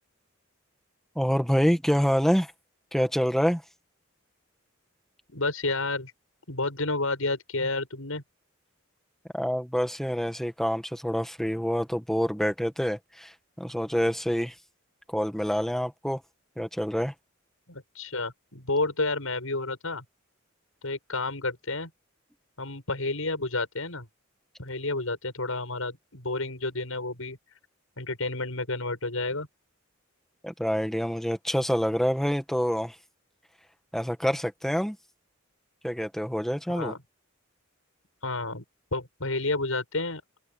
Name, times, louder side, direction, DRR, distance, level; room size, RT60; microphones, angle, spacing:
voice 1, 1.1-2.5 2.9-3.6 9.3-14.5 15.1-16.2 16.6-17.1 30.4-32.9 33.9-35.0 35.8-36.9, equal, ahead, 1.5 m, -27 dB
voice 2, 5.3-6.1 6.5-8.2 17.7-20.0 20.8-21.9 22.6-24.1 24.6-27.4 28.0-29.5 36.7-37.0 38.2-38.6 38.9-40.2, left 2 dB, 80° left, 7.9 m, -30 dB
open air
head